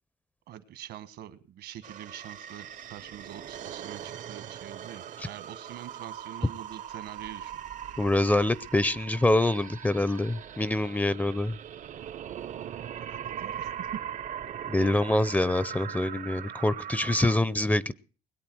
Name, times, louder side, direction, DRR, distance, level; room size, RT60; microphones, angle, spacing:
voice 1, 0.5-7.6 12.8-13.9, right 11 dB, 75° right, 12 dB, 1.4 m, -45 dB
sound 1, 1.8-17.4, right 9 dB, 50° right, 0.7 m, -40 dB
voice 2, 8.0-11.5 14.7-17.9, left 1 dB, 10° left, 18 dB, 0.6 m, -25 dB
21.0 x 8.6 x 6.2 m, 0.39 s
cardioid pair, 110°, 17 cm